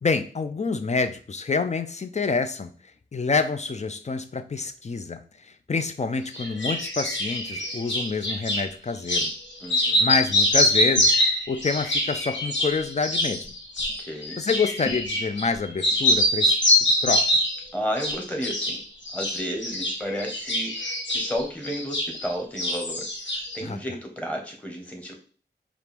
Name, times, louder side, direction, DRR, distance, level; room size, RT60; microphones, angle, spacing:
voice 1, 0.0-2.7 3.1-9.3 9.8-13.5 14.4-17.4 23.6-23.8, left 4 dB, 40° left, 9 dB, 0.5 m, -27 dB
sound 1, 6.3-8.6 9.1-9.3 9.6-15.5 15.8-17.6 18.0-18.8 19.1-22.3 22.6-23.6, left 1 dB, 85° left, 1.1 m, -24 dB
voice 2, 9.6-10.1 14.0-14.4 17.7-18.8 19.1-25.1, equal, 10° left, 2 dB, 1.2 m, -32 dB
4.6 x 2.5 x 3.4 m, 0.40 s
wide cardioid pair, 55°, 19 cm